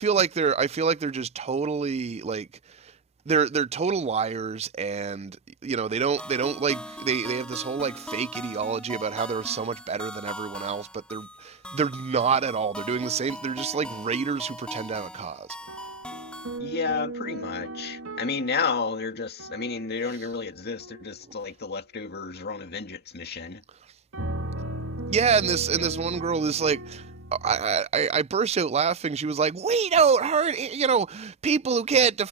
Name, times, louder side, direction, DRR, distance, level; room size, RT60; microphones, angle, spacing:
voice 1, 0.0-2.9 3.3-5.4 5.6-15.5 25.1-27.0 27.3-32.3, right 6 dB, 30° right, 0.4 m, -26 dB
sound 1, 6.2-16.6, left 1 dB, 5° left, 2.6 m, -40 dB
sound 2, 15.7-20.2 20.8-21.2 24.1-27.6, right 1 dB, 75° right, 2.8 m, -36 dB
voice 2, 16.6-23.6, left 4 dB, 50° left, 2.2 m, -31 dB
head